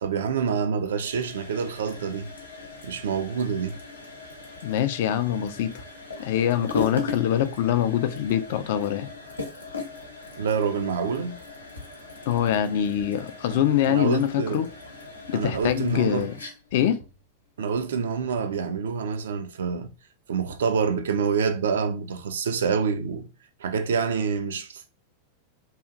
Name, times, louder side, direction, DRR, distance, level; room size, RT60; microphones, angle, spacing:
voice 1, 0.0-2.3 2.8-3.8 10.4-11.4 13.5-13.6 13.9-14.7 15.3-16.3 17.6-19.9 20.3-23.3 23.6-24.9, right 6 dB, 65° right, 0.3 m, -27 dB
sound 1, 0.9-18.6, left 3 dB, 80° left, 0.7 m, -39 dB
voice 2, 4.6-5.7 6.2-9.1 12.3-14.7 15.3-16.3 16.7-17.0, left 10 dB, 55° left, 0.3 m, -24 dB
2.7 x 2.4 x 2.4 m
figure-of-eight pair, 90°, 0 cm